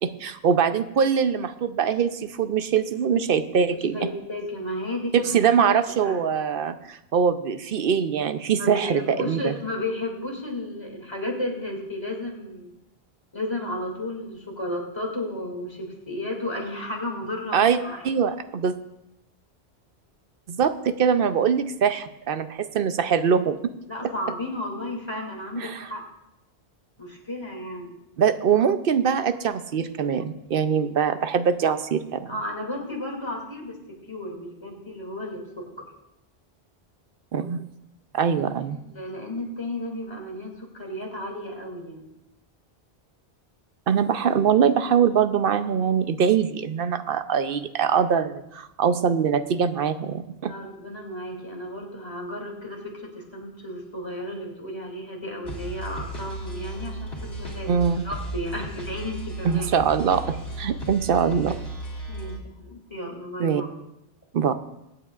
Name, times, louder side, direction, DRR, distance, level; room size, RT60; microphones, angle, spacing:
voice 1, 0.0-4.0 5.1-9.5 17.5-17.8 18.0-18.8 20.5-23.6 25.6-25.9 28.2-32.3 37.3-37.6 38.1-38.8 43.9-50.5 57.7-58.0 59.4-61.6 63.4-63.6 64.3-64.5, right 7 dB, 65° right, 11 dB, 0.8 m, -23 dB
voice 2, 3.7-5.2 6.0-6.2 8.6-12.7 13.3-18.0 23.9-26.0 27.0-27.9 32.3-33.8 34.1-35.6 38.7-42.1 50.4-59.7 62.1-63.7, left 1 dB, 25° left, -1 dB, 2.6 m, -33 dB
sound 1, 55.4-62.4, right 1 dB, 70° left, 2.5 m, -35 dB
23.5 x 8.8 x 2.4 m, 0.88 s
omnidirectional pair, 1.1 m